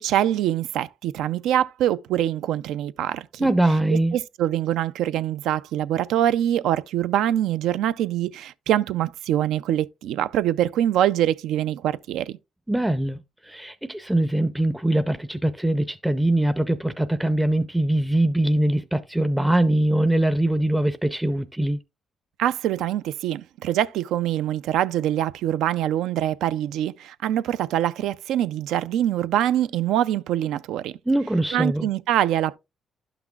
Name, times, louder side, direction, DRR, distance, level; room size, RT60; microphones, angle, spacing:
voice 1, 0.0-3.5 4.1-12.4 22.4-30.9 31.5-32.6, right 11 dB, 85° right, 0.3 m, -24 dB
voice 2, 3.4-4.2 12.7-21.8 31.1-31.9, right 1 dB, 5° right, 0.4 m, -22 dB
11.5 x 5.9 x 2.3 m
cardioid pair, 90°, 0 cm